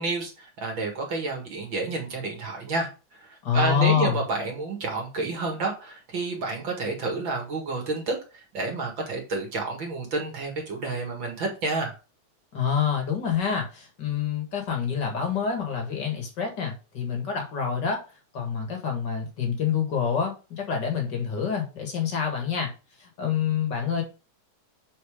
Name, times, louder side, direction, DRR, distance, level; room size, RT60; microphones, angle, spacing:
voice 1, 0.0-2.9 3.2-11.9, right 3 dB, 45° right, 1 dB, 2.1 m, -30 dB
voice 2, 3.4-4.2 12.5-18.0 18.3-22.7 23.0-24.0, left 7 dB, 40° left, 3 dB, 1.8 m, -27 dB
7.5 x 4.2 x 5.0 m, 0.32 s
omnidirectional pair, 3.6 m